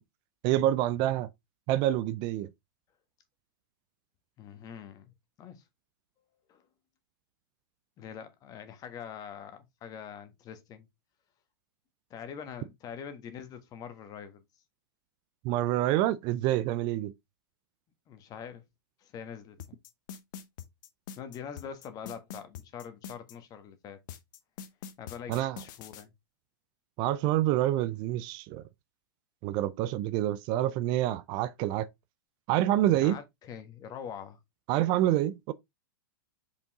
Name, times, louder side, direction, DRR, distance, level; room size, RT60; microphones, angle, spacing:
voice 1, 0.4-1.3 1.7-2.5 15.4-17.1 25.3-25.6 27.0-28.6 29.4-31.9 32.5-33.2 34.7-35.5, right 13 dB, 40° right, 0.5 m, -27 dB
voice 2, 4.4-5.1 5.4-5.6 6.5-6.6 8.0-10.8 12.1-14.4 18.1-18.6 19.0-19.8 21.2-24.0 25.0-26.1 33.0-34.4, left 7 dB, 30° left, 1.5 m, -44 dB
sound 1, 19.6-23.3 24.1-26.0, left 8 dB, 55° left, 1.1 m, -44 dB
5.3 x 5.1 x 3.5 m
hypercardioid pair, 115°, 12 cm